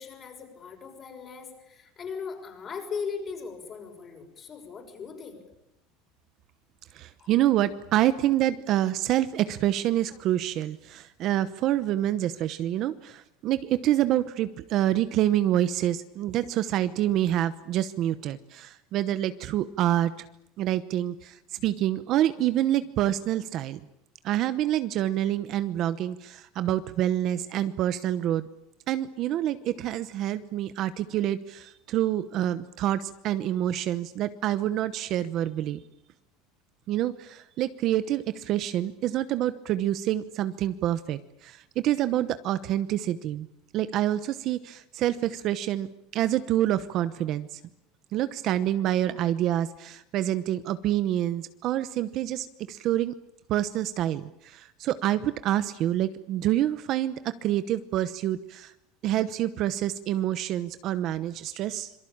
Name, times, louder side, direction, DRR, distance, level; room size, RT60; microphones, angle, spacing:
voice 1, 0.0-5.4 7.2-7.3, left 5 dB, 20° left, 4 dB, 6.3 m, -38 dB
voice 2, 6.9-20.3 20.6-23.8 24.2-28.5 28.9-35.8 36.9-43.5 43.7-47.6 48.1-53.1 53.5-57.1 57.4-58.7 59.0-61.9, right 12 dB, 35° right, 13 dB, 0.9 m, -27 dB
26.5 x 24.0 x 8.8 m, 0.84 s
cardioid pair, 175°, 0 cm